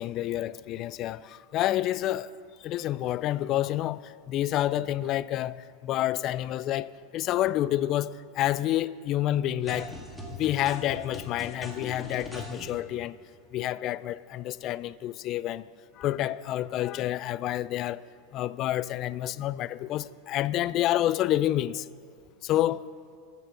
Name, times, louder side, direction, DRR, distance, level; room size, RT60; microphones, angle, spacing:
voice 1, 0.0-2.3 2.6-9.9 10.4-13.2 13.5-15.6 16.0-18.0 18.3-21.9 22.4-22.8, left 13 dB, 45° left, 0.3 m, -28 dB
sound 1, 9.6-12.8, left 1 dB, ahead, 2.0 m, -41 dB
14.0 x 6.9 x 5.8 m
hypercardioid pair, 105°, 0 cm